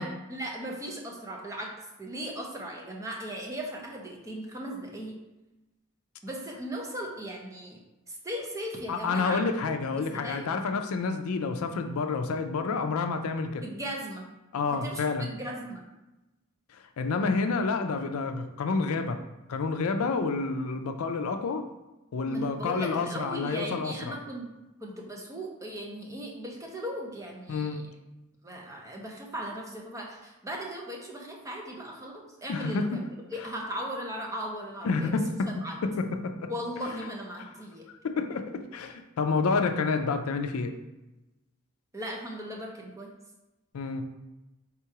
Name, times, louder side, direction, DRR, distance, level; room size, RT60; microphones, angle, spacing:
voice 1, 0.0-5.2 6.2-7.8 8.1-9.5 10.0-10.6 13.6-14.3 14.7-15.8 22.2-24.5 24.8-27.8 28.4-33.0 33.3-35.8 36.5-37.9 41.9-43.1, equal, 15° right, 0 dB, 0.6 m, -38 dB
voice 2, 8.9-13.6 14.5-15.3 17.0-19.2 19.5-21.6 22.1-24.1 27.5-27.8 32.5-33.0 34.8-35.5 35.8-36.5 38.0-40.7 43.7-44.0, left 4 dB, 80° left, 7 dB, 0.4 m, -29 dB
3.6 x 2.9 x 4.6 m, 1.0 s
head